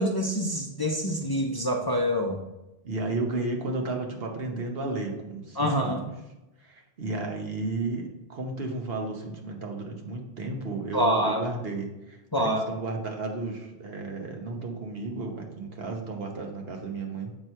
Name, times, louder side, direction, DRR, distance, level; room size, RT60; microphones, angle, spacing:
voice 1, 0.0-2.4 5.6-6.0 10.9-11.4 12.3-12.6, equal, 25° left, 1 dB, 0.6 m, -26 dB
voice 2, 2.8-6.1 6.6-17.3, right 3 dB, 70° right, 2 dB, 1.3 m, -33 dB
7.6 x 3.0 x 5.5 m, 0.97 s
omnidirectional pair, 1.0 m